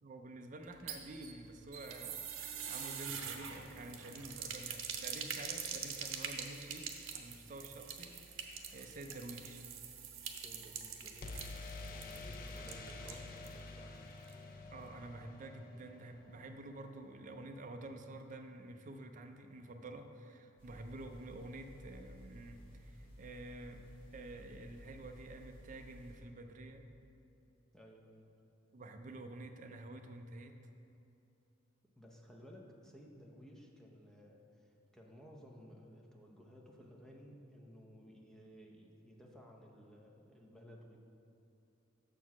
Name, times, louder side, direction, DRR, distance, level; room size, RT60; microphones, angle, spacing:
voice 1, 0.0-9.6 14.7-26.9 28.7-30.6, right 2 dB, 40° right, 5 dB, 0.4 m, -49 dB
sound 1, 0.6-13.6 13.9-14.0 14.3-14.4, right 7 dB, 90° right, 0.7 m, -45 dB
sound 2, 3.1-5.1 11.2-17.0, left 3 dB, 45° left, 0.5 m, -50 dB
voice 2, 10.3-11.5 11.8-14.0 27.7-28.3 32.0-41.0, equal, 5° left, -2 dB, 0.7 m, -56 dB
sound 3, 20.6-26.2, equal, 25° left, 1.6 m, -56 dB
6.9 x 4.6 x 5.9 m, 2.8 s
head